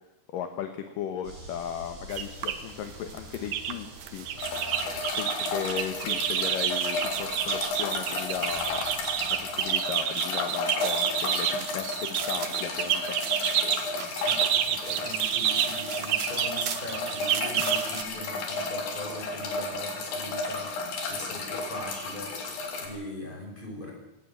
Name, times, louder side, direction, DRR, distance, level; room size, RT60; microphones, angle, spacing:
voice 1, 0.3-4.3 5.2-8.9 9.4-13.2, left 9 dB, 65° left, 7 dB, 2.4 m, -36 dB
sound 1, 1.2-9.8, equal, 45° right, 9.3 m, -48 dB
sound 2, 2.1-2.6 3.1-3.7 4.0-18.0, right 10 dB, 65° right, 2.5 m, -29 dB
sound 3, 4.4-22.9, left 3 dB, 85° left, 5.7 m, -33 dB
voice 2, 14.2-23.9, left 1 dB, 10° left, 0 dB, 6.2 m, -41 dB
20.0 x 18.5 x 7.5 m, 0.97 s
omnidirectional pair, 5.2 m